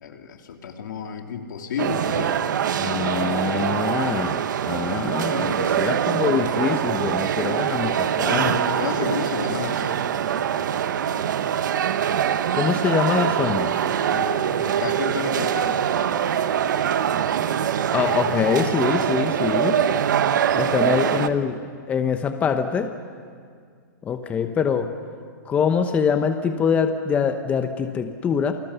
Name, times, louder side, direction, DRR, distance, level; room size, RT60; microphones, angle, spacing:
voice 1, 0.0-2.5 8.3-10.1 14.1-16.0, left 7 dB, 70° left, 4 dB, 2.7 m, -31 dB
sound 1, 1.8-21.3, right 9 dB, 70° right, 1.1 m, -23 dB
voice 2, 2.8-8.6 12.5-13.7 17.9-19.8 20.6-21.6 21.9-22.9 24.0-24.9 25.5-28.5, left 6 dB, 15° left, 8 dB, 0.8 m, -24 dB
28.5 x 21.5 x 6.9 m, 2.1 s
hypercardioid pair, 160°, 11 cm